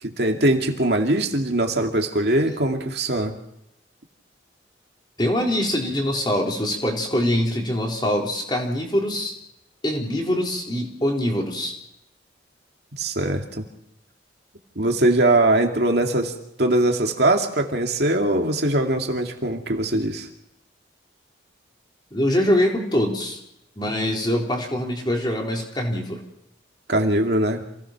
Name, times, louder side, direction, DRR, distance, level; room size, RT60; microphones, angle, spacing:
voice 1, 0.0-3.3 13.0-13.6 14.8-16.3 16.6-20.3 26.9-27.6, right 1 dB, 60° right, 3 dB, 2.4 m, -21 dB
voice 2, 5.2-9.3 9.8-11.7 22.1-23.4 23.8-26.2, left 1 dB, 25° left, 0 dB, 4.1 m, -23 dB
27.5 x 18.5 x 6.0 m, 0.81 s
head